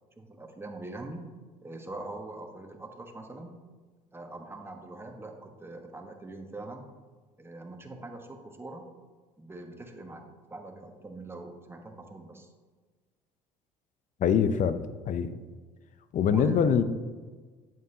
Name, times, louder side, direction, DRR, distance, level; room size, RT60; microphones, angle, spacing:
voice 1, 0.2-1.2 1.6-3.5 4.1-6.8 7.4-8.9 9.4-12.5 16.2-16.7, right 2 dB, 15° right, 3 dB, 1.3 m, -43 dB
voice 2, 14.2-15.3 16.1-16.8, left 7 dB, 50° left, 12 dB, 0.7 m, -24 dB
9.2 x 7.8 x 2.9 m, 1.4 s
supercardioid pair, 75°, 16 cm